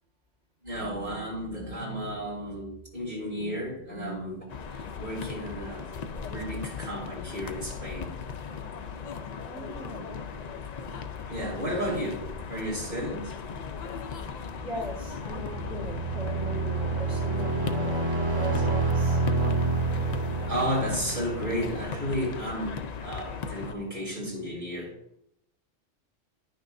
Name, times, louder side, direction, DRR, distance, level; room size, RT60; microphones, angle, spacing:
voice 1, 0.6-5.9 6.2-8.2 9.9-10.0 11.3-13.3 16.0-17.4 20.5-24.9, equal, 45° right, -4 dB, 3.4 m, -33 dB
sound 1, 4.5-23.7, left 6 dB, 55° left, 0.5 m, -38 dB
voice 2, 9.4-10.3 14.6-19.2, equal, 70° right, -4 dB, 2.1 m, -39 dB
sound 2, 14.9-22.5, right 3 dB, 20° right, 1.6 m, -29 dB
10.0 x 6.2 x 2.6 m, 0.73 s
omnidirectional pair, 1.2 m